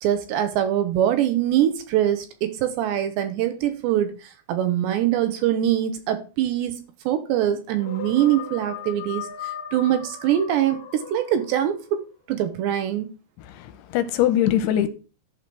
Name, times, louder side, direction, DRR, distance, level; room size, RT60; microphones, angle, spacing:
voice 1, 0.0-12.0 12.3-13.1, right 11 dB, 75° right, 3.0 m, -23 dB
sound 1, 7.8-11.9, left 8 dB, 60° left, 2.5 m, -37 dB
voice 2, 13.5-14.9, left 11 dB, 75° left, 3.1 m, -22 dB
11.5 x 5.1 x 7.4 m
omnidirectional pair, 5.6 m